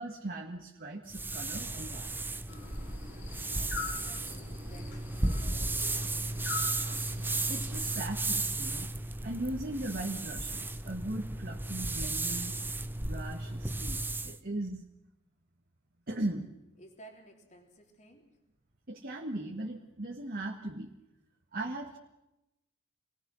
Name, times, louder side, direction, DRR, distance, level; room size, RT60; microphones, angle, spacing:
voice 1, 0.0-2.2 7.5-8.9 9.2-12.6 13.0-14.8 16.1-16.5 18.9-20.9 21.5-22.0, right 1 dB, 45° right, 0 dB, 1.9 m, -38 dB
sound 1, 1.1-14.4, right 2 dB, 10° right, 0.7 m, -34 dB
sound 2, 2.5-8.0, left 5 dB, 55° left, 3.1 m, -44 dB
voice 2, 3.5-4.3 4.5-6.8 16.8-18.3, right 1 dB, 35° left, 2 dB, 3.5 m, -55 dB
28.0 x 20.5 x 6.4 m, 0.93 s
head